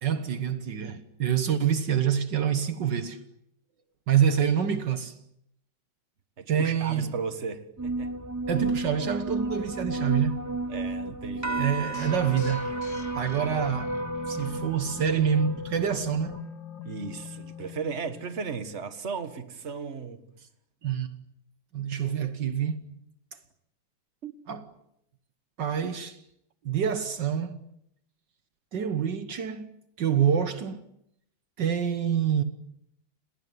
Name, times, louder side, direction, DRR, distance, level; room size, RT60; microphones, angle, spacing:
voice 1, 0.0-3.2 4.1-5.1 6.5-7.1 8.5-10.5 11.6-14.0 14.3-16.4 20.8-21.1 21.7-22.9 24.5-24.7 25.6-26.2 26.6-27.6 28.7-29.7 30.0-30.8 31.6-32.4, right 8 dB, 70° right, 1.9 m, -27 dB
voice 2, 6.4-8.1 10.7-11.6 16.8-20.2 24.2-24.4, right 5 dB, 35° right, 2.0 m, -35 dB
sound 1, 7.8-16.4, right 2 dB, 15° right, 0.8 m, -32 dB
sound 2, 11.9-18.9, left 7 dB, 75° left, 2.9 m, -43 dB
30.0 x 19.0 x 9.7 m
omnidirectional pair, 2.0 m